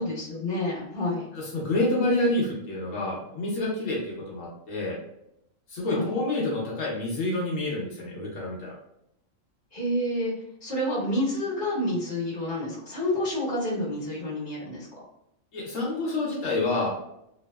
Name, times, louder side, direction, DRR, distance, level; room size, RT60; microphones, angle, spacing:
voice 1, 0.0-1.3 5.9-6.1 9.7-10.3 10.6-14.9, left 1 dB, 40° left, -7 dB, 1.1 m, -29 dB
voice 2, 1.3-5.0 5.7-8.7 15.5-16.9, left 2 dB, 80° left, -4 dB, 1.1 m, -28 dB
2.8 x 2.0 x 2.2 m, 0.79 s
omnidirectional pair, 1.3 m